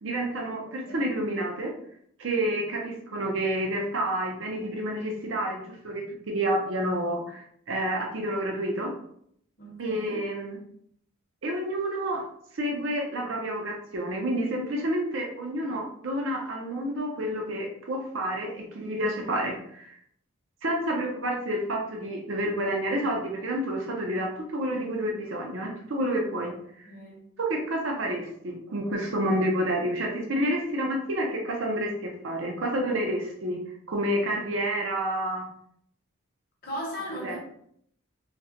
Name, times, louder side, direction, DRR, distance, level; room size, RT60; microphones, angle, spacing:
voice 1, 0.0-1.7 2.2-8.9 9.8-10.6 11.4-12.2 12.5-19.9 20.6-26.5 26.8-26.9 27.4-33.6 33.9-35.4 37.2-37.4, right 1 dB, 60° right, 0.5 m, -29 dB
voice 2, 9.6-10.2 26.8-27.3 36.6-37.4, equal, 45° left, 0.9 m, -38 dB
4.1 x 2.1 x 2.5 m
head